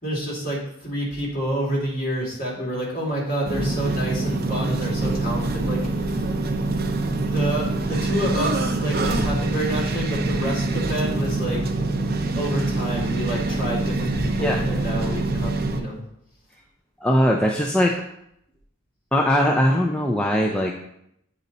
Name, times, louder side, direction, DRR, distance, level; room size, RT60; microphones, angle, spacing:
voice 1, 0.0-6.3 7.1-11.6 12.3-16.0, right 1 dB, 40° left, -4 dB, 2.5 m, -28 dB
sound 1, 3.4-15.8, right 2 dB, 45° right, 0.6 m, -25 dB
voice 2, 17.0-17.9 19.1-20.7, equal, 5° left, -1 dB, 0.4 m, -20 dB
8.2 x 4.0 x 4.2 m, 0.74 s
head